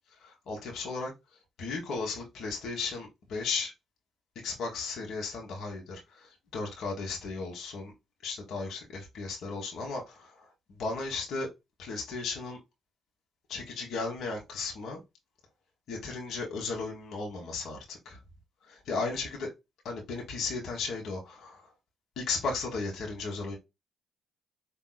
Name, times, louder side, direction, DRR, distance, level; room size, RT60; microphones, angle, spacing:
voice 1, 0.1-1.1 1.6-3.7 4.4-7.9 8.2-10.5 10.8-11.5 11.8-12.6 13.5-15.0 15.9-18.2 18.6-19.5 19.8-21.7 22.2-23.6, left 4 dB, 70° left, 1.3 m, -35 dB
4.7 x 2.8 x 2.2 m
cardioid pair, 90°, 0 cm